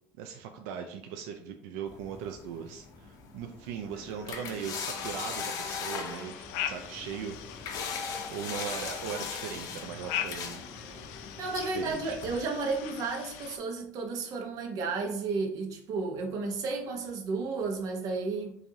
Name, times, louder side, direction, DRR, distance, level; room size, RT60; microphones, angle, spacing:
voice 1, 0.2-6.3 6.7-7.4 8.3-10.6 11.6-12.2, right 7 dB, 90° right, 4 dB, 0.4 m, -39 dB
sound 1, 1.9-12.4, left 6 dB, 50° left, 0.6 m, -40 dB
Human voice / Acoustic guitar, 3.9-11.9, left 2 dB, 5° right, 0.6 m, -54 dB
sound 2, 5.6-13.6, left 10 dB, 85° left, 0.4 m, -41 dB
voice 2, 11.4-18.6, right 4 dB, 50° right, 2 dB, 0.8 m, -32 dB
4.6 x 2.6 x 2.7 m, 0.70 s
cardioid pair, 140°, 8 cm